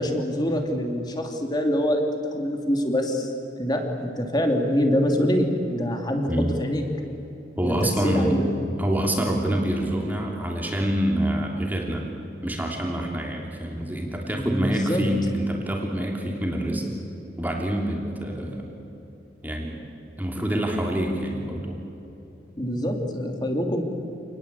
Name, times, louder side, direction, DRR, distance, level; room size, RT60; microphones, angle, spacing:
voice 1, 0.0-2.1 2.3-3.3 3.6-6.9 7.6-8.4 14.3-15.0 22.6-23.8, equal, 25° left, 3 dB, 2.9 m, -25 dB
voice 2, 7.6-8.4 8.8-12.0 12.4-16.9 17.4-18.6 19.4-19.8 20.2-21.8, right 1 dB, 10° right, -1 dB, 3.2 m, -26 dB
28.0 x 20.0 x 8.4 m, 3.0 s
head